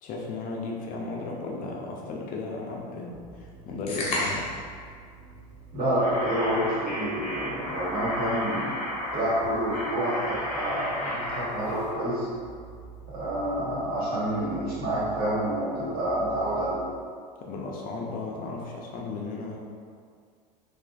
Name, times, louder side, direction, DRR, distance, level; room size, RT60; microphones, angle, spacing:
voice 1, 0.0-4.4 17.4-19.6, left 3 dB, 40° left, -2 dB, 0.4 m, -35 dB
sound 1, 3.1-16.7, right 3 dB, 25° right, 0.7 m, -48 dB
sound 2, 3.9-4.7, left 2 dB, 85° left, 0.6 m, -29 dB
voice 2, 5.7-8.7 9.1-12.3 13.1-16.9, right 1 dB, 45° right, -9 dB, 1.3 m, -28 dB
sound 3, 6.0-11.9, left 1 dB, 5° left, 1.0 m, -33 dB
2.4 x 2.4 x 2.3 m, 2.1 s
hypercardioid pair, 90°, 21 cm